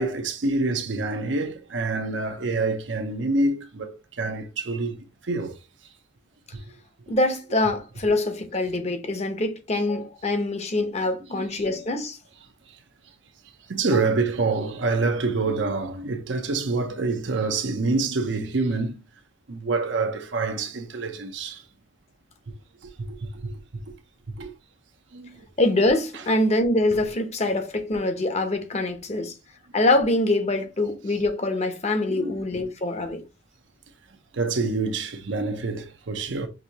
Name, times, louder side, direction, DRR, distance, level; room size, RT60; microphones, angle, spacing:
voice 1, 0.0-5.0 5.3-5.5 11.3-11.8 13.7-19.0 19.5-21.6 23.4-23.5 24.4-24.5 25.1-25.3 26.1-26.2 29.2-29.3 32.1-32.3 34.3-36.5, right 3 dB, 80° right, 0.7 m, -26 dB
voice 2, 7.1-12.2 25.6-29.3 29.7-33.2, left 2 dB, 35° left, 0.7 m, -24 dB
6.1 x 2.7 x 2.8 m
head